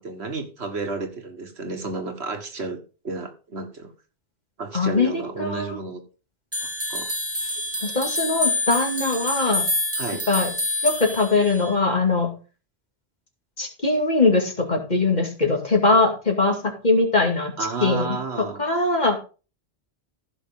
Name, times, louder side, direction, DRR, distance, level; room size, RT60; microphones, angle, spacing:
voice 1, 0.0-2.8 3.0-3.9 4.6-6.0 6.6-7.1 7.4-7.6 10.0-10.2 17.6-18.6, right 3 dB, 70° right, 6 dB, 1.8 m, -31 dB
voice 2, 4.7-5.8 7.8-9.7 10.3-10.5 10.8-12.3 13.6-17.5 17.8-18.1 18.6-19.2, left 3 dB, 40° left, 2 dB, 2.5 m, -21 dB
sound 1, 6.5-11.7, left 2 dB, 10° right, 1.8 m, -27 dB
15.0 x 6.3 x 3.7 m, 0.33 s
omnidirectional pair, 1.1 m